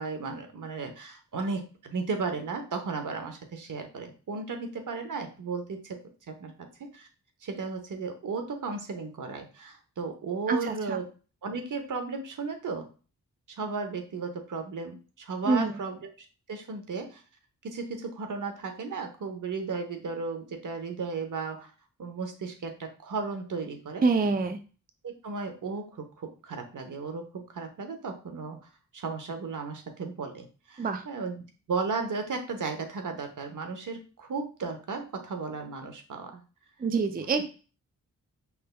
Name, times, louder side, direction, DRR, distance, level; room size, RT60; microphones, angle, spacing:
voice 1, 0.0-6.0 6.3-6.5 6.9-7.1 7.4-11.1 11.4-12.9 13.6-16.0 16.5-17.2 17.6-21.7 22.0-24.0 25.0-28.6 28.9-31.4 31.7-36.4 37.3-37.4, right 4 dB, 70° right, 5 dB, 1.0 m, -35 dB
voice 2, 10.5-11.0 15.5-15.7 24.0-24.6 30.8-31.0 36.8-37.5, right 4 dB, 30° right, 8 dB, 0.5 m, -26 dB
5.4 x 3.4 x 2.2 m, 0.36 s
cardioid pair, 65°, 32 cm